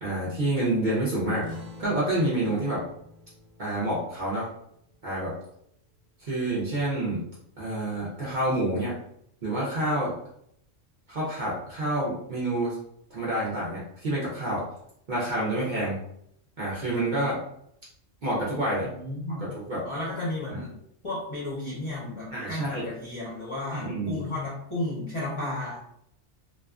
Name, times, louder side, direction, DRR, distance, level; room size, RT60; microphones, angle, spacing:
voice 1, 0.0-1.5 1.8-2.8 3.6-4.5 5.0-5.3 6.2-7.2 7.6-8.9 9.4-10.1 11.1-12.8 13.1-14.7 15.1-16.0 16.6-17.4 18.2-18.9 19.4-19.8 20.5-20.6 22.3-22.9 23.7-24.2, right 1 dB, 50° right, -7 dB, 0.7 m, -28 dB
sound 1, 1.4-6.4, left 2 dB, 25° right, 0.8 m, -48 dB
voice 2, 18.8-19.5 19.8-20.8 21.0-25.8, left 1 dB, 35° left, -8 dB, 0.5 m, -33 dB
2.4 x 2.3 x 2.3 m, 0.72 s
omnidirectional pair, 1.3 m